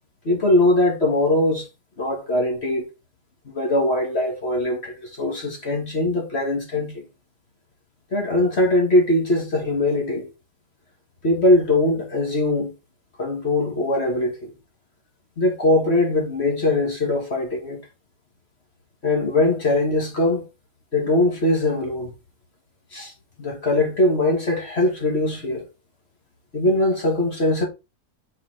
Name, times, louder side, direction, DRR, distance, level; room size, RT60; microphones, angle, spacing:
voice 1, 0.2-1.7 2.0-2.9 3.5-7.0 8.1-10.3 11.2-12.7 13.2-14.5 15.4-17.8 19.0-20.5 20.9-22.1 22.9-23.1 23.4-25.6 26.5-27.6, left 1 dB, 40° left, 2.2 m, -21 dB
5.7 x 4.9 x 4.1 m
omnidirectional pair, 1.8 m